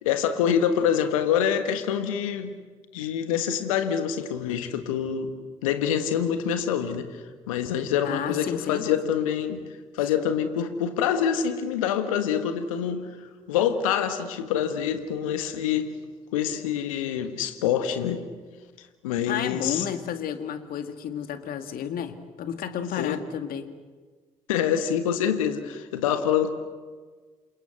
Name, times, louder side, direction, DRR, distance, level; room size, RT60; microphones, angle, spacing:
voice 1, 0.0-2.6 2.9-5.3 5.6-9.6 9.9-15.9 16.3-18.2 19.0-19.8 23.0-23.2 24.5-26.5, left 8 dB, 80° left, 9 dB, 1.5 m, -26 dB
voice 2, 8.0-9.0 19.3-23.7, left 9 dB, 60° left, 8 dB, 2.0 m, -32 dB
28.0 x 23.0 x 8.0 m, 1.5 s
figure-of-eight pair, 45°, 17 cm